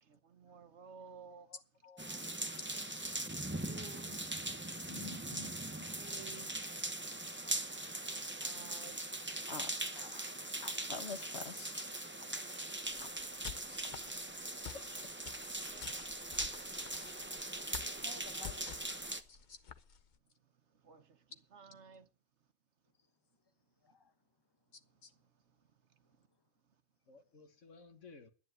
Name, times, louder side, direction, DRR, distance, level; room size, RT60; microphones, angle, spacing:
voice 1, 0.0-1.5 3.5-4.2 5.9-6.5 8.4-9.0 15.7-16.2 20.8-22.1, right 6 dB, 70° right, 1.3 m, -55 dB
voice 2, 1.3-2.2 14.7-14.8 27.1-28.3, left 4 dB, 85° left, 1.8 m, -56 dB
sound 1, 2.0-19.2, right 1 dB, 10° right, 0.8 m, -41 dB
voice 3, 4.9-5.5 9.5-9.7 10.9-11.8 13.8-13.9, left 5 dB, 60° left, 1.6 m, -45 dB
voice 4, 9.9-10.8 12.2-12.4 13.0-13.1 13.8-14.0 18.0-18.8 23.8-24.1, left 4 dB, 20° left, 1.0 m, -55 dB
sound 2, 12.8-20.2, left 8 dB, 45° left, 0.8 m, -50 dB
10.5 x 10.0 x 8.0 m
omnidirectional pair, 1.2 m